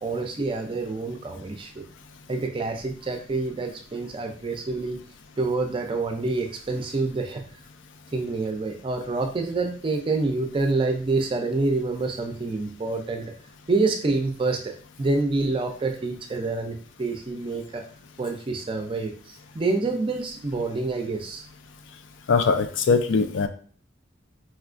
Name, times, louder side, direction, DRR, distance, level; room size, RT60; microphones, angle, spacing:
voice 1, 0.0-1.8 2.3-5.0 5.4-7.4 8.1-13.3 13.7-14.7 15.0-17.8 18.2-21.5, right 3 dB, 30° right, 5 dB, 0.4 m, -27 dB
voice 2, 22.3-23.5, left 4 dB, 75° left, 8 dB, 0.4 m, -21 dB
4.2 x 2.3 x 2.4 m, 0.44 s
head